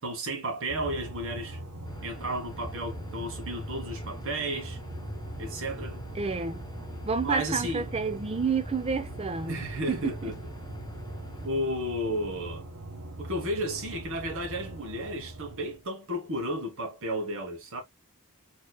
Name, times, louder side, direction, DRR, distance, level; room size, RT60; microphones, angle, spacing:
voice 1, 0.0-1.6 2.0-4.8 5.4-6.0 7.2-7.8 9.5-10.3 11.4-12.6 13.2-17.8, right 1 dB, 65° right, 1.4 m, -33 dB
sound 1, 0.7-15.9, right 2 dB, 85° right, 0.8 m, -42 dB
sound 2, 1.8-11.5, equal, 20° left, 0.6 m, -43 dB
voice 2, 6.2-6.7 7.0-10.3, right 5 dB, 25° right, 0.6 m, -30 dB
4.5 x 3.1 x 2.2 m
head